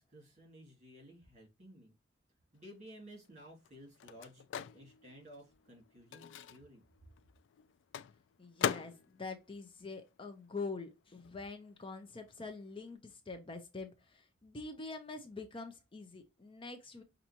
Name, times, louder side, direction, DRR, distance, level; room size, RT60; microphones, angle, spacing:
voice 1, 0.0-1.9 2.5-6.8, equal, 40° right, 2.3 m, -55 dB
Microwave oven, 2.7-10.8 11.1-13.0, left 8 dB, 70° left, 0.3 m, -43 dB
voice 2, 8.4-17.0, left 3 dB, 30° left, 0.6 m, -45 dB
5.6 x 2.6 x 2.8 m
head